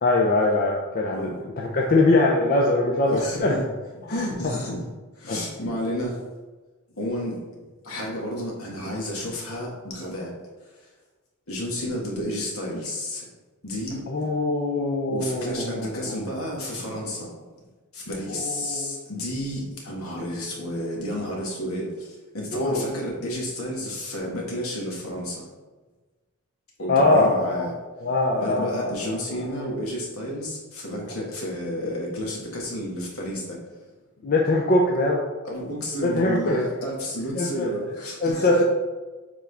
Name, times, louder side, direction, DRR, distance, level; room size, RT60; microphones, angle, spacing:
voice 1, 0.0-1.3 1.6-3.6 4.0-4.5 5.3-5.5 14.1-16.2 18.3-19.0 22.5-22.9 26.9-27.7 28.0-29.6 34.2-35.2 36.0-36.6 37.3-37.7 38.2-38.6, left 2 dB, 40° left, -1 dB, 0.6 m, -23 dB
voice 2, 1.1-1.6 3.0-3.7 4.1-4.8 5.2-6.2 7.0-7.4 7.8-10.3 11.5-13.3 13.6-14.0 15.1-17.3 17.9-25.4 26.8-27.7 28.3-33.6 34.2-34.3 35.4-38.6, equal, 70° left, -2 dB, 1.7 m, -31 dB
7.3 x 3.8 x 3.4 m, 1.3 s
head